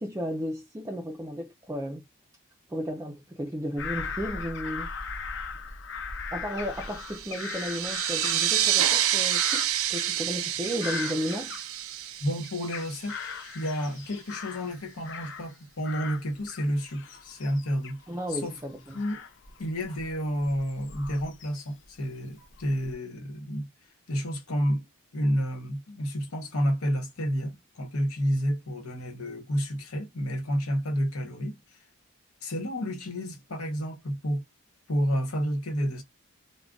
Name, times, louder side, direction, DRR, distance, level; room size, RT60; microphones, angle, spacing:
voice 1, 0.0-2.0 2.7-4.9 6.3-11.6 18.1-19.0, equal, 15° right, 0.3 m, -34 dB
Bird vocalization bird call bird song / Crow, 3.8-12.1 12.4-15.6 15.8-21.9 22.4-22.9, left 5 dB, 55° left, 0.6 m, -39 dB
sound 1, 7.0-13.2, right 11 dB, 70° right, 0.5 m, -28 dB
voice 2, 12.2-13.2 13.5-18.0 18.3-18.5 18.9-19.2 19.6-23.7 24.1-24.8 25.1-31.6 32.4-34.4 34.9-36.0, equal, 85° left, 1.0 m, -30 dB
2.4 x 2.1 x 3.6 m
head